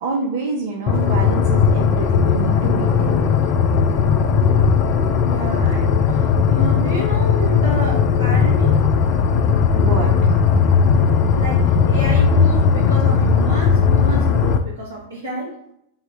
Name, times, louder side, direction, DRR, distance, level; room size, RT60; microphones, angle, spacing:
voice 1, 0.0-3.3 9.7-10.4, right 4 dB, 55° right, 0 dB, 0.5 m, -27 dB
sound 1, 0.9-14.6, left 6 dB, 40° left, 0.3 m, -17 dB
voice 2, 5.2-8.8 11.3-15.6, equal, 75° right, -6 dB, 0.9 m, -29 dB
3.5 x 2.1 x 4.3 m, 0.75 s
figure-of-eight pair, 90°, 0 cm